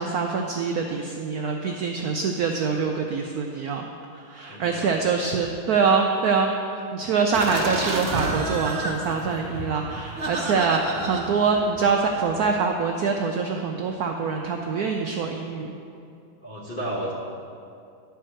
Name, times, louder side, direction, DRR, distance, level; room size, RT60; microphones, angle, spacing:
voice 1, 0.0-3.9 4.1-6.5 6.9-15.8, right 5 dB, 80° right, 2 dB, 0.8 m, -24 dB
voice 2, 4.5-5.0 16.4-17.1, right 1 dB, 40° left, -5 dB, 0.8 m, -32 dB
sound 1, 7.3-12.5, right 2 dB, 40° right, 0.9 m, -31 dB
10.5 x 4.6 x 6.4 m, 2.5 s
omnidirectional pair, 2.2 m